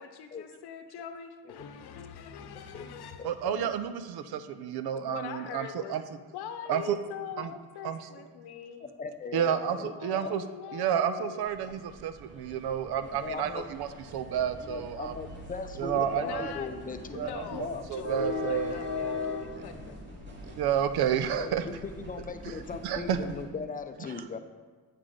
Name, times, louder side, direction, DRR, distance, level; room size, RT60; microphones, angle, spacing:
voice 1, 0.0-3.5 5.0-5.9 6.3-8.9 9.3-11.5 15.9-20.0, left 8 dB, 75° left, 7 dB, 0.9 m, -42 dB
voice 2, 2.5-2.9 3.2-3.7 8.8-10.3 11.2-11.3 13.2-13.7 14.6-17.8 21.4-24.4, left 4 dB, 20° left, 8 dB, 0.6 m, -39 dB
voice 3, 3.2-6.0 6.7-7.0 7.4-7.5 7.8-8.1 9.3-10.4 10.7-15.1 15.8-16.5 17.2-18.8 20.5-21.6 22.8-23.2, right 9 dB, 70° right, 11 dB, 0.6 m, -30 dB
sound 1, 11.4-23.4, left 2 dB, 30° right, 2.4 m, -40 dB
8.0 x 5.8 x 5.0 m, 1.4 s
cardioid pair, 115°, 39 cm